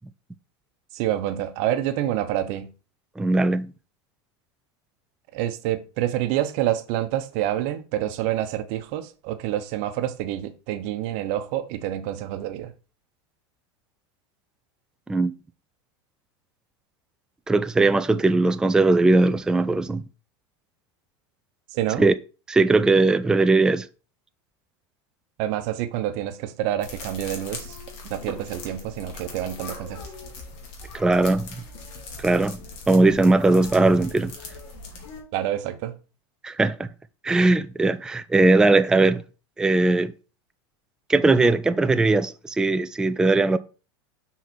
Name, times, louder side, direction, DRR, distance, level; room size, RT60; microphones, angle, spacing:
voice 1, 0.9-2.7 5.3-12.7 21.7-22.0 25.4-27.8 28.1-30.0 35.3-35.9, right 12 dB, 55° right, 0.9 m, -27 dB
voice 2, 3.2-3.7 15.1-15.3 17.5-20.0 22.0-22.1 22.5-23.9 30.9-31.5 32.2-32.6 32.9-34.3 36.4-36.9 37.2-39.2 39.6-40.1 41.1-43.6, right 2 dB, 5° right, 0.3 m, -19 dB
sound 1, 26.8-35.2, left 3 dB, 55° left, 2.3 m, -40 dB
6.1 x 4.1 x 4.2 m
supercardioid pair, 115°, 14 cm